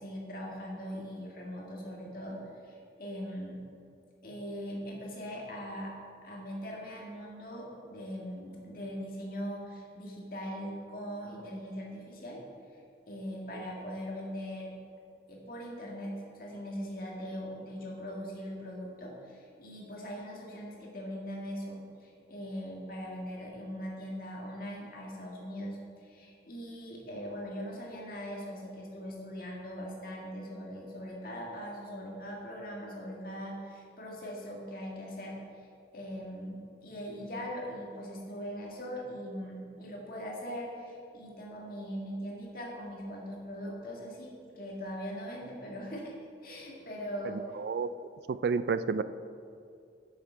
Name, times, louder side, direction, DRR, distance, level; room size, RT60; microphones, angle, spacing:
voice 1, 0.0-2.4 2.6-3.6 4.2-5.9 6.2-12.4 13.1-14.7 15.3-35.7 35.9-46.2 46.4-47.4, equal, 50° left, -2 dB, 2.1 m, -40 dB
voice 2, 47.6-47.9 48.3-49.0, right 5 dB, 60° right, 14 dB, 0.3 m, -29 dB
11.0 x 7.3 x 4.6 m, 2.4 s
head